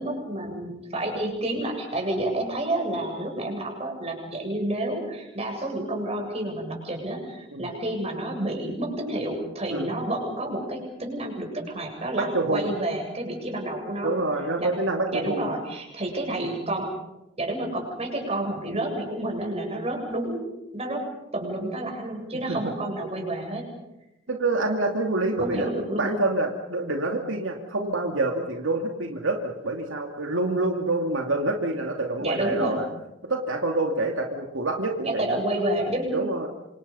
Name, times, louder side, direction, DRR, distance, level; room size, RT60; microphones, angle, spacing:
voice 1, 0.0-14.2 14.6-14.7 15.1-16.9 17.4-21.1 21.3-23.7 25.4-26.2 32.2-32.8 35.0-36.2, right 1 dB, 30° right, 2 dB, 7.7 m, -29 dB
voice 2, 12.2-12.7 14.0-15.4 24.3-25.7 26.0-32.9 33.3-35.4 36.1-36.5, right 2 dB, 80° right, 3 dB, 2.6 m, -27 dB
28.0 x 27.0 x 5.6 m, 0.92 s
head